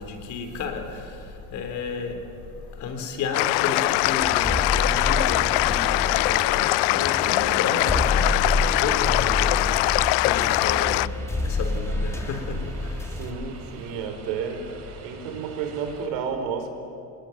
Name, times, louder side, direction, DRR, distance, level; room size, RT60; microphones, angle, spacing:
voice 1, 0.0-9.6 10.2-11.1 11.4-13.1, left 4 dB, 50° left, 6 dB, 3.8 m, -32 dB
sound 1, 3.3-11.1, left 22 dB, 85° left, 0.6 m, -22 dB
sound 2, 3.7-16.1, right 5 dB, 40° right, 3.8 m, -46 dB
sound 3, 4.2-13.3, left 2 dB, 5° left, 2.0 m, -29 dB
voice 2, 13.1-14.7 15.0-16.7, right 6 dB, 85° right, 6 dB, 4.6 m, -31 dB
27.5 x 21.0 x 9.2 m, 2.8 s
cardioid pair, 165°, 39 cm